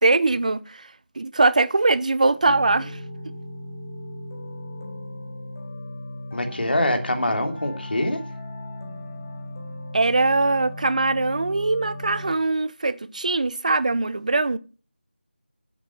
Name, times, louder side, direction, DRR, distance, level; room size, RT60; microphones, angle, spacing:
voice 1, 0.0-0.9 1.2-3.0 9.9-14.6, right 3 dB, 40° right, 0.8 m, -21 dB
sound 1, 2.4-12.3, left 1 dB, 25° left, 3.7 m, -37 dB
voice 2, 6.3-8.2, left 1 dB, 60° left, 3.0 m, -24 dB
13.0 x 7.7 x 5.6 m
figure-of-eight pair, 170°, 6 cm